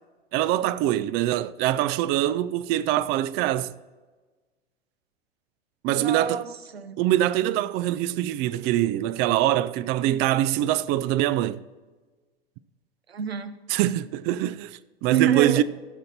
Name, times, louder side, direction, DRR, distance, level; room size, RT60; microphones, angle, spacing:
voice 1, 0.3-3.7 5.8-6.4 7.0-11.6 13.7-15.6, right 13 dB, 35° right, 0.4 m, -24 dB
voice 2, 5.9-7.0 13.1-13.6 15.1-15.6, right 9 dB, 90° right, 0.8 m, -27 dB
14.5 x 6.5 x 4.2 m
hypercardioid pair, 95°, 30 cm